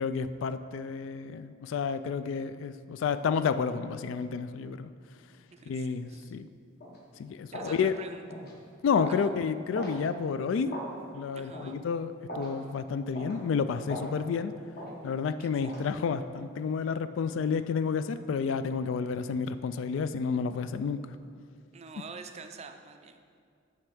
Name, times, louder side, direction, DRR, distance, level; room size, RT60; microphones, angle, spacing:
voice 1, 0.0-4.9 5.7-6.5 7.2-7.9 8.8-10.8 11.1-14.5 15.0-21.0, left 6 dB, 70° left, 12 dB, 0.3 m, -30 dB
voice 2, 5.5-6.4 7.5-8.2 9.1-9.3 11.3-11.8 15.4-15.7 21.7-23.4, right 5 dB, 35° right, 7 dB, 0.4 m, -47 dB
sound 1, 6.8-7.0 7.5-7.8 8.3-8.5 9.0-9.2 9.7-10.0 10.7-10.9 11.5-11.7 12.3-12.5 13.1-13.4 13.9-14.1 14.7-15.0 15.6-15.8, left 1 dB, 50° left, 1.1 m, -38 dB
8.3 x 3.3 x 6.1 m, 2.2 s
head